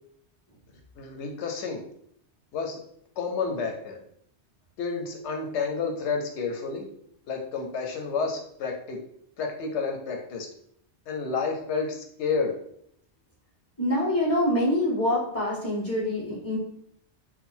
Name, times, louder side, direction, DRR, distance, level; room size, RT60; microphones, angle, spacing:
voice 1, 1.0-1.8 2.5-2.8 3.2-4.0 4.8-6.9 7.3-9.0 9.4-10.5 11.1-12.6, left 5 dB, 85° left, 3 dB, 1.0 m, -30 dB
voice 2, 13.8-16.6, left 1 dB, 10° left, -8 dB, 1.6 m, -25 dB
3.7 x 2.2 x 4.2 m, 0.68 s
omnidirectional pair, 1.1 m